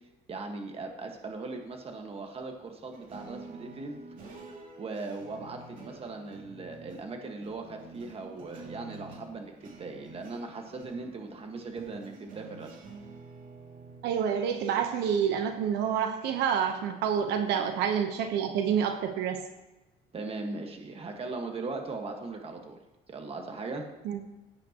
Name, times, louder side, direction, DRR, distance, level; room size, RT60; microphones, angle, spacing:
voice 1, 0.3-4.0 4.8-12.8 20.1-22.8 23.1-23.9, right 3 dB, 35° right, 3 dB, 1.6 m, -39 dB
sound 1, 2.9-14.0, right 3 dB, 55° right, 2.5 m, -48 dB
voice 2, 14.0-19.5 24.0-24.2, right 8 dB, 85° right, 6 dB, 1.0 m, -28 dB
16.5 x 8.8 x 3.0 m, 1.1 s
cardioid pair, 110°, 17 cm